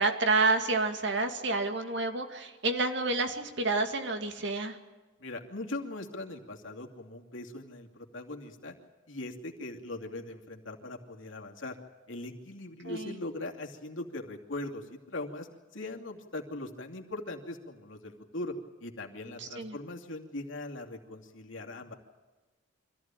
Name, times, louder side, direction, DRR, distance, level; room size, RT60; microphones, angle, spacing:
voice 1, 0.0-4.7 12.8-13.1 19.4-19.8, right 3 dB, 60° right, 5 dB, 2.4 m, -29 dB
voice 2, 5.2-8.8 9.1-11.8 12.1-15.5 15.7-18.5 18.8-21.9, left 2 dB, 70° left, 2 dB, 2.7 m, -40 dB
25.0 x 15.0 x 9.1 m, 1.3 s
head